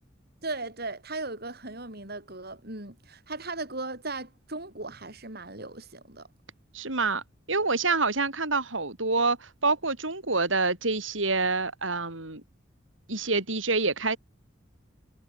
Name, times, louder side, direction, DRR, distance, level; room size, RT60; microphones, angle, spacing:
voice 1, 0.4-6.3, right 2 dB, 55° right, 7.5 m, -37 dB
voice 2, 6.7-7.2 7.5-12.4 13.1-14.2, right 3 dB, 80° right, 5.1 m, -27 dB
head